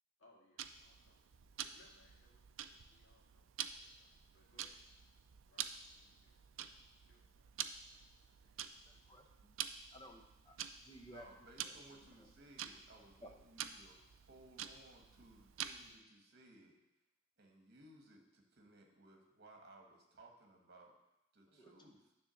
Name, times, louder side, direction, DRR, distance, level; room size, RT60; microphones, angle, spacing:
voice 1, 0.2-1.3 1.6-4.8 5.4-8.5, left 1 dB, 65° left, -4 dB, 2.0 m, -71 dB
Tick-tock, 0.6-16.0, right 9 dB, 70° right, 0.4 m, -49 dB
voice 2, 8.9-9.6 9.9-10.6 10.8-11.3 11.6-11.7 21.5-21.7, equal, 20° left, 2 dB, 0.8 m, -57 dB
voice 3, 11.1-16.8 17.4-20.9 21.3-22.0, right 2 dB, 50° right, 2 dB, 1.3 m, -61 dB
9.7 x 3.6 x 6.3 m, 0.90 s
head